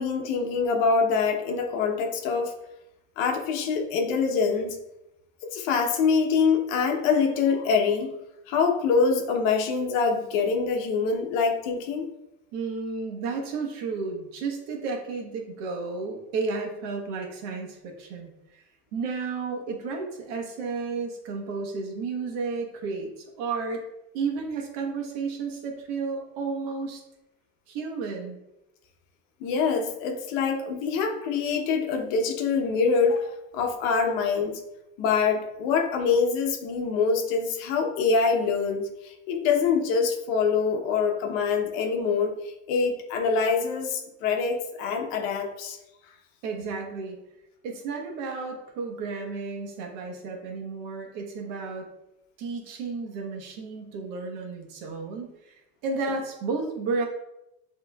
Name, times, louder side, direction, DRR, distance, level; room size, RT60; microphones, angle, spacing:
voice 1, 0.0-2.5 3.2-4.8 5.4-8.1 8.5-12.1 29.4-34.6 35.0-45.8, left 5 dB, 85° left, 4 dB, 0.9 m, -25 dB
voice 2, 12.5-18.6 18.9-23.8 24.1-27.0 27.7-28.4 46.4-47.2 47.6-51.9 52.4-55.5 55.8-57.1, right 4 dB, 70° right, 1 dB, 1.2 m, -32 dB
7.5 x 3.1 x 2.3 m, 0.91 s
cardioid pair, 165°, 38 cm